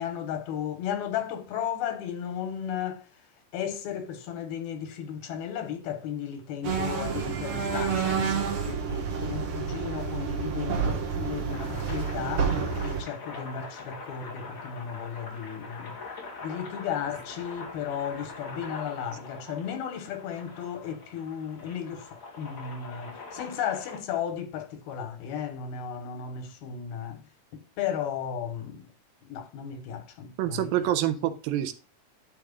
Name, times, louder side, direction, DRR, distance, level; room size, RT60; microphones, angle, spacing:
voice 1, 0.0-3.0 3.5-16.0 16.4-27.2 27.5-28.9 29.2-30.9 31.2-31.3, left 8 dB, 85° left, 3.2 m, -35 dB
sound 1, 6.6-13.0, right 6 dB, 55° right, 1.6 m, -29 dB
sound 2, 11.5-24.0, left 4 dB, 40° left, 2.3 m, -43 dB
voice 2, 30.4-31.7, right 12 dB, 80° right, 2.4 m, -27 dB
10.5 x 6.8 x 2.4 m
omnidirectional pair, 4.3 m